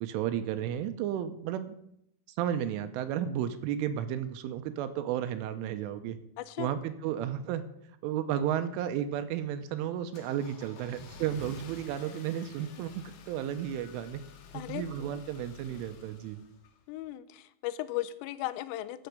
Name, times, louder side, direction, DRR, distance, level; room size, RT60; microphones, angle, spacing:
voice 1, 0.0-1.7 2.4-6.2 6.6-7.6 8.0-14.2 14.5-16.4, right 10 dB, 85° right, 9 dB, 3.2 m, -33 dB
voice 2, 6.4-6.7 14.5-14.8 16.9-19.1, left 15 dB, 90° left, 14 dB, 3.2 m, -36 dB
Car / Engine starting, 8.9-17.1, left 5 dB, 65° left, 2.6 m, -51 dB
13.0 x 8.0 x 6.5 m, 0.74 s
omnidirectional pair, 5.8 m